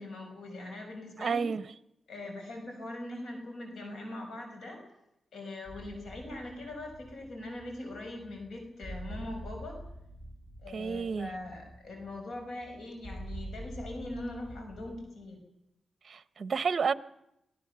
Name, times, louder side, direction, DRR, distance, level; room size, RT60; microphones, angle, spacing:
voice 1, 0.0-1.5 2.1-4.8 5.3-9.8 10.6-15.4, left 1 dB, 75° left, 5.9 m, -41 dB
voice 2, 1.2-1.6 10.7-11.3 16.0-16.9, right 5 dB, 50° right, 0.8 m, -30 dB
sound 1, 5.6-15.1, right 1 dB, 30° left, 5.6 m, -46 dB
26.0 x 19.0 x 6.9 m
wide cardioid pair, 105°, 0 cm